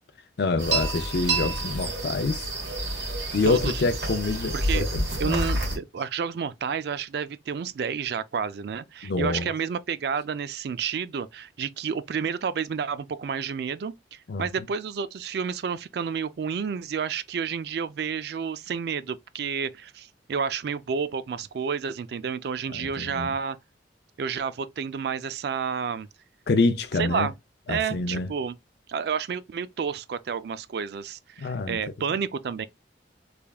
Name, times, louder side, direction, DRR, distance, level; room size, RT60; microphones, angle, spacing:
voice 1, 0.4-2.5 3.3-5.5 9.0-9.5 14.3-14.5 22.7-23.4 26.5-27.3 27.7-28.3 31.4-31.8, left 3 dB, 60° left, 0.5 m, -26 dB
sound 1, 0.6-5.8, right 2 dB, 75° right, 1.9 m, -28 dB
voice 2, 4.5-4.8 5.2-23.6 24.2-26.1 27.0-27.3 27.7-28.5 28.9-32.7, right 6 dB, 60° right, 0.3 m, -30 dB
3.4 x 3.4 x 2.3 m
head